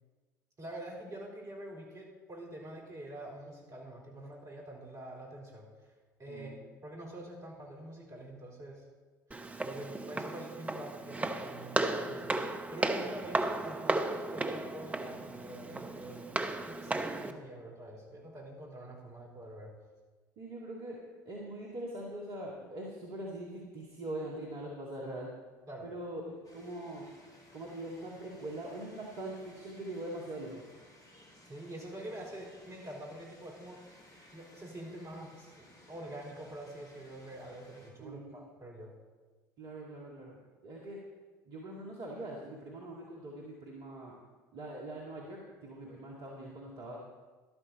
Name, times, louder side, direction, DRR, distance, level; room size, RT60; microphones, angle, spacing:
voice 1, 0.6-5.9 6.2-8.8 9.3-19.7 25.7-25.9 31.5-33.8 34.3-38.9, right 1 dB, 35° right, -2 dB, 4.4 m, -46 dB
Walk footsteps, 9.3-17.3, right 2 dB, 15° right, 0.9 m, -35 dB
voice 2, 20.4-21.0 21.3-25.3 25.8-27.1 27.5-30.6 38.0-38.4 39.6-41.0 41.5-44.1 44.5-47.0, right 1 dB, 50° right, -3 dB, 2.1 m, -42 dB
sound 1, 26.4-37.9, left 1 dB, 35° left, 4.5 m, -59 dB
12.5 x 12.0 x 4.2 m, 1.3 s
figure-of-eight pair, 60°, 10 cm